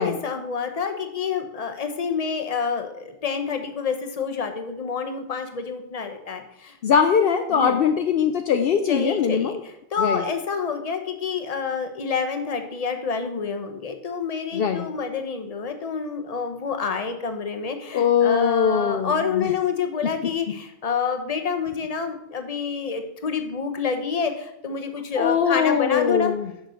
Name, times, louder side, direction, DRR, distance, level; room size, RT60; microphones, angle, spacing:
voice 1, 0.0-6.8 7.5-7.8 8.9-26.3, left 5 dB, 40° left, 6 dB, 0.9 m, -28 dB
voice 2, 6.8-9.6 10.0-10.2 14.5-14.9 17.9-19.5 25.2-26.5, left 7 dB, 70° left, 7 dB, 0.8 m, -21 dB
6.6 x 6.2 x 6.2 m, 0.80 s
omnidirectional pair, 1.1 m